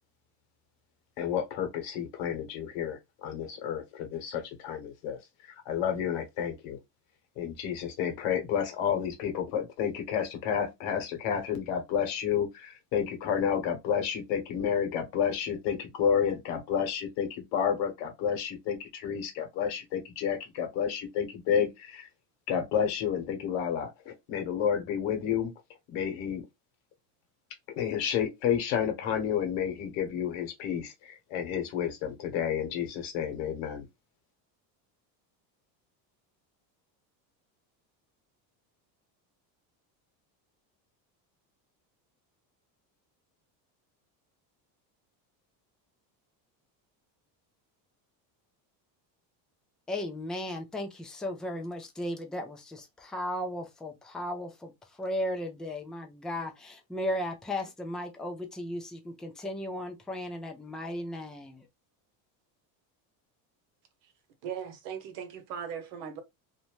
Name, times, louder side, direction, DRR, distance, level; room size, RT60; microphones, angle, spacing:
voice 1, 1.2-6.8 7.4-22.1 22.5-25.5 25.9-26.4 27.7-33.9, left 8 dB, 75° left, 1.3 m, -30 dB
voice 2, 49.9-54.7 55.0-61.6, left 1 dB, ahead, 0.3 m, -35 dB
voice 3, 64.4-66.2, right 8 dB, 80° right, 1.0 m, -38 dB
2.7 x 2.1 x 3.0 m
supercardioid pair, 105°, 50 cm